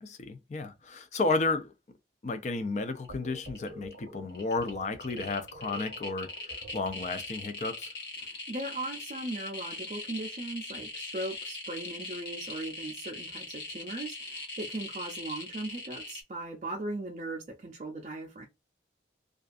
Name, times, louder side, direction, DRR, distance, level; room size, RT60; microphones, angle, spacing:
voice 1, 0.0-1.7 2.2-7.9, left 3 dB, 40° left, 0.4 m, -32 dB
sound 1, 2.8-3.1 3.3-3.9 4.3-16.2, left 2 dB, 70° left, 1.0 m, -41 dB
sound 2, 3.1-7.5, right 2 dB, 90° right, 0.8 m, -48 dB
voice 2, 8.2-18.5, right 2 dB, 40° right, 0.4 m, -38 dB
2.5 x 2.3 x 2.4 m
head